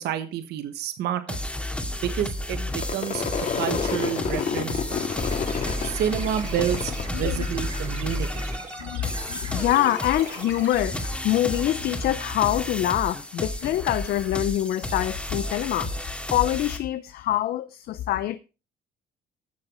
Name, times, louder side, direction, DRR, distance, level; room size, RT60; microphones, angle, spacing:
voice 1, 0.0-1.4 2.0-3.2 3.5-5.1 5.8-8.4, right 10 dB, 75° right, 1.4 m, -29 dB
sound 1, 1.3-16.8, left 1 dB, 5° left, 2.2 m, -32 dB
Crowd / Fireworks, 2.7-8.1 8.4-9.1 9.4-12.9, left 6 dB, 50° left, 2.2 m, -31 dB
sound 2, 5.2-10.8, right 5 dB, 40° right, 3.0 m, -41 dB
voice 2, 7.1-7.5 8.8-15.9 16.3-18.4, left 13 dB, 65° left, 0.7 m, -25 dB
13.5 x 7.2 x 4.9 m
cardioid pair, 110°, 17 cm